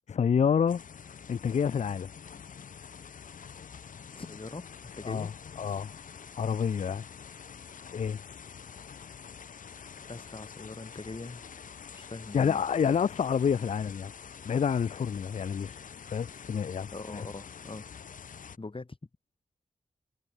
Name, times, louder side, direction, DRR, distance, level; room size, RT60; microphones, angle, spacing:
voice 1, 0.1-0.8 1.3-2.1 5.0-5.3 5.6-6.0 6.4-7.0 7.9-8.2 12.3-14.1 14.4-16.9 17.1-17.3, left 7 dB, 60° left, 0.5 m, -28 dB
sound 1, 0.7-18.6, left 7 dB, 85° left, 2.0 m, -47 dB
voice 2, 4.2-5.3 10.1-11.4 11.9-12.6 16.9-17.9 18.6-19.0, left 3 dB, 40° left, 4.1 m, -42 dB
cardioid pair, 40°, 13 cm